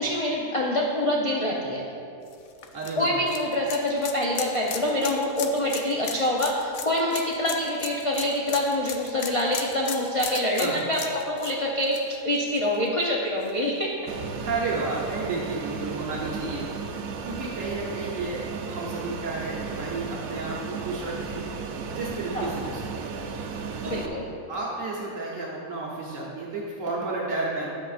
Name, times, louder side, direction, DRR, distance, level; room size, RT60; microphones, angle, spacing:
voice 1, 0.0-1.9 3.0-11.0 11.3-12.0 12.2-13.9 22.3-22.5 23.9-24.3, left 1 dB, 35° left, -3 dB, 0.6 m, -25 dB
sound 1, 2.3-13.0 13.4-13.5 15.0-15.1, left 8 dB, 80° left, 1.0 m, -37 dB
voice 2, 2.7-3.2 10.6-10.8 14.4-16.7 17.2-21.4 21.9-22.8 23.8-24.0 24.5-27.7, right 3 dB, 70° right, -4 dB, 1.3 m, -32 dB
Fixed-wing aircraft airplane, 14.1-24.1, right 5 dB, 90° right, 1.1 m, -35 dB
10.5 x 7.7 x 2.5 m, 2.6 s
omnidirectional pair, 1.4 m